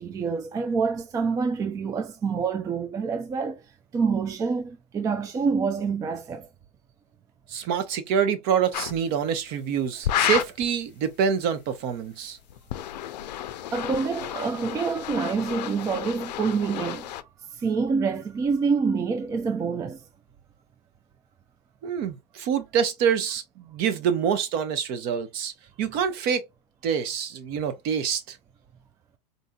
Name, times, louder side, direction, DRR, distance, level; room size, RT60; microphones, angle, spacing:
voice 1, 0.0-3.6 3.9-6.5 13.7-17.1 17.5-20.0, right 5 dB, 15° right, 0.4 m, -27 dB
voice 2, 7.5-12.4 21.8-25.5 25.8-26.4 26.8-28.4, right 7 dB, 45° right, 0.9 m, -26 dB
sound 1, 8.7-9.0 10.0-10.7 12.5-17.2, left 12 dB, 80° left, 0.5 m, -31 dB
3.9 x 2.7 x 2.3 m
hypercardioid pair, 115°, 21 cm